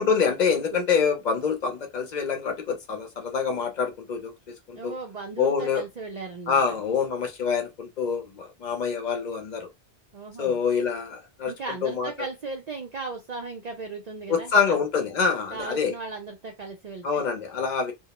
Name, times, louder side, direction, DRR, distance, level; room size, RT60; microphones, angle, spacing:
voice 1, 0.0-4.9 5.4-5.8 6.5-9.7 10.4-11.5 11.8-12.1 14.3-15.9 17.0-17.9, left 6 dB, 50° left, 0.7 m, -26 dB
voice 2, 4.8-6.8 10.1-10.6 11.4-14.8 15.5-17.2, right 4 dB, 50° right, 0.5 m, -37 dB
2.2 x 2.0 x 2.9 m
omnidirectional pair, 1.1 m